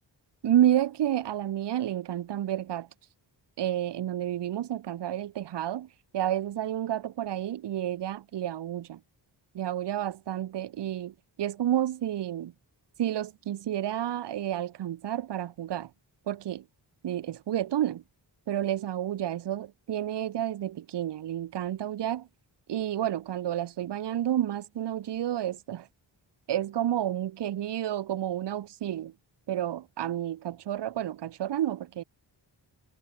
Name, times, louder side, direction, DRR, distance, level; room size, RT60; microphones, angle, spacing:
voice 1, 0.4-2.9 3.6-5.9 6.1-9.0 9.5-12.5 13.0-15.9 16.3-16.6 17.0-18.0 18.5-22.3 22.7-25.9 26.5-29.1 29.5-32.0, right 11 dB, 65° right, 0.8 m, -30 dB
cardioid pair, 65°, 46 cm